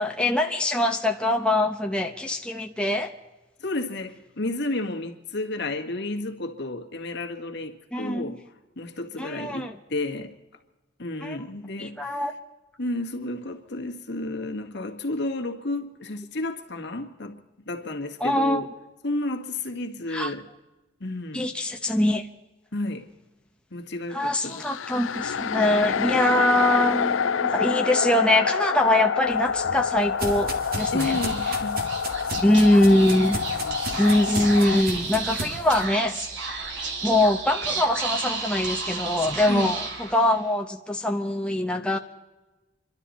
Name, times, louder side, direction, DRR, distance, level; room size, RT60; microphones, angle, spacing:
voice 1, 0.0-3.1 7.9-8.4 9.2-9.7 11.2-11.4 11.8-12.3 18.2-18.6 20.1-20.3 21.3-22.3 24.1-31.2 32.4-33.4 33.9-36.2 36.7-42.0, left 1 dB, 5° left, 0.8 m, -23 dB
voice 2, 3.6-8.4 8.7-10.3 11.0-12.2 12.8-18.7 19.0-20.5 21.0-21.5 22.7-23.1 23.7-24.6 30.9-31.9 32.2-32.6 33.6-33.8 39.5-39.7, left 2 dB, 65° left, 1.8 m, -32 dB
sound 1, 24.4-34.8, left 6 dB, 90° left, 0.5 m, -27 dB
sound 2, 29.3-35.8, right 2 dB, 50° right, 2.0 m, -35 dB
Speech / Whispering, 30.8-40.5, right 3 dB, 70° right, 2.8 m, -33 dB
27.5 x 12.5 x 4.2 m
head